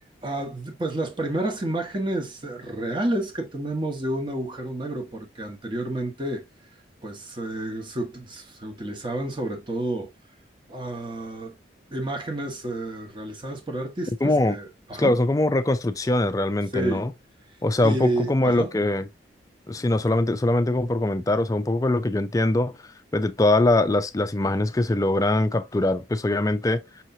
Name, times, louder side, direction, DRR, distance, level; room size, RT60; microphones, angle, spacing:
voice 1, 0.2-6.4 7.0-10.1 10.7-11.5 11.9-15.1 16.7-17.1 17.8-18.7, right 1 dB, 25° right, 1.0 m, -30 dB
voice 2, 14.2-14.6 15.0-17.1 17.6-19.1 19.7-22.8 23.1-26.8, left 2 dB, 20° left, 0.4 m, -22 dB
5.6 x 3.0 x 2.6 m
head